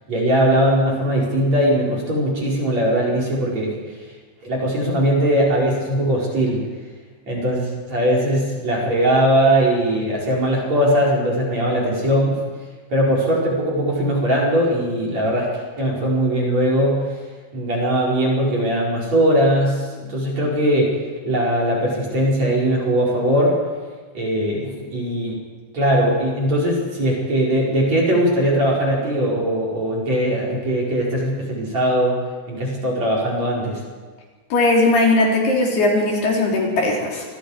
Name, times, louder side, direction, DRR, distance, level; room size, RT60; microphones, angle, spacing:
voice 1, 0.1-4.0 4.4-6.7 7.3-12.4 12.9-15.5 15.8-17.1 17.5-21.0 21.3-23.6 24.1-25.4 25.7-32.2 32.5-33.8, equal, 35° right, -3 dB, 5.5 m, -20 dB
voice 2, 34.5-37.2, left 2 dB, 55° left, -2 dB, 5.3 m, -18 dB
27.0 x 23.0 x 4.9 m, 1.4 s
omnidirectional pair, 5.6 m